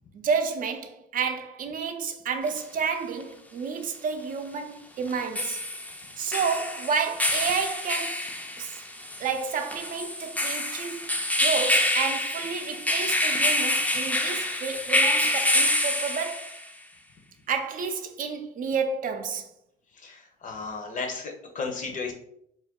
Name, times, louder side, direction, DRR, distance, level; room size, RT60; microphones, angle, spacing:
voice 1, 0.1-5.6 6.2-8.3 8.6-8.8 9.2-11.1 11.4-16.6 17.5-19.5, right 5 dB, 50° right, 0.5 m, -30 dB
sound 1, 2.5-2.6 5.1-16.7, left 1 dB, 10° left, 0.5 m, -27 dB
voice 2, 20.0-22.1, left 4 dB, 45° left, 0.7 m, -34 dB
2.5 x 2.1 x 3.6 m
supercardioid pair, 70°, 18 cm